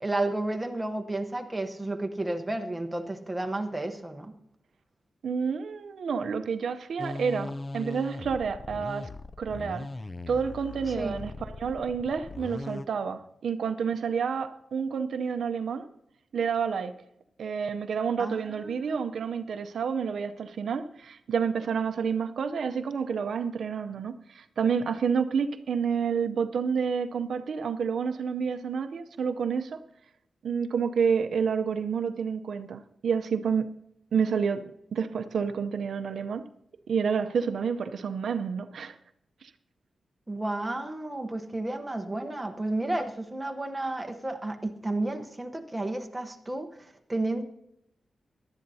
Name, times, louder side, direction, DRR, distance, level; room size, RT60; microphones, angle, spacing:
voice 1, 0.0-4.3 10.9-11.2 18.2-19.0 40.3-46.7 47.1-47.4, right 2 dB, 10° right, 5 dB, 0.9 m, -32 dB
voice 2, 5.2-9.1 9.4-9.9 10.3-15.9 16.3-17.0 17.4-29.8 30.4-33.7 34.1-36.4 36.9-39.0, right 6 dB, 75° right, 9 dB, 0.6 m, -29 dB
sound 1, 7.0-12.9, left 2 dB, 25° left, 0.3 m, -39 dB
18.0 x 11.5 x 2.7 m, 0.78 s
wide cardioid pair, 170°, 0 cm